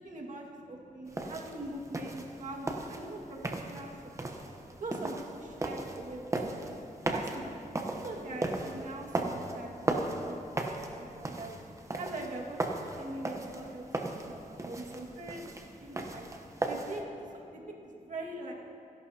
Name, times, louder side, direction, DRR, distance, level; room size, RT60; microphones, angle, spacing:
voice 1, 0.0-4.4 4.8-6.8 7.1-11.6 12.0-13.9 14.2-15.5 15.8-16.3 16.6-17.0 17.5-18.5, right 2 dB, 60° right, -1 dB, 1.9 m, -43 dB
voice 2, 0.8-1.2 15.3-16.1 17.5-17.6, left 1 dB, 50° left, -7 dB, 2.4 m, -63 dB
sound 1, 1.1-17.0, right 2 dB, 20° right, 0.9 m, -37 dB
27.5 x 11.5 x 2.8 m, 2.7 s
wide cardioid pair, 170°, 14 cm